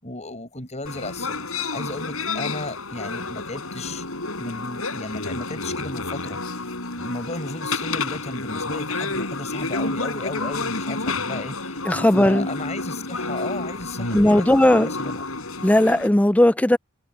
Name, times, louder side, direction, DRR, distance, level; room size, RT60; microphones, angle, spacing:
voice 1, 0.0-4.1 4.4-6.6 7.0-11.9 12.1-15.2, left 2 dB, 35° left, 7.5 m, -34 dB
sound 1, 0.9-16.1, left 3 dB, 85° left, 6.8 m, -30 dB
voice 2, 11.9-12.5 14.1-14.9 15.6-16.8, left 1 dB, 5° left, 0.4 m, -17 dB
head